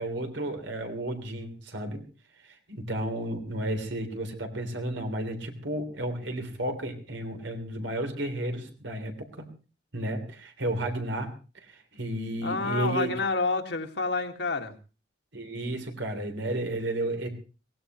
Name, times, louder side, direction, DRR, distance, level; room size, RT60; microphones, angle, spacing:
voice 1, 0.0-2.0 2.4-9.5 9.9-13.1 15.3-17.3, right 1 dB, 85° right, 4 dB, 3.4 m, -33 dB
voice 2, 12.4-14.7, left 3 dB, 70° left, 5 dB, 1.9 m, -28 dB
22.0 x 17.5 x 3.1 m, 0.33 s
head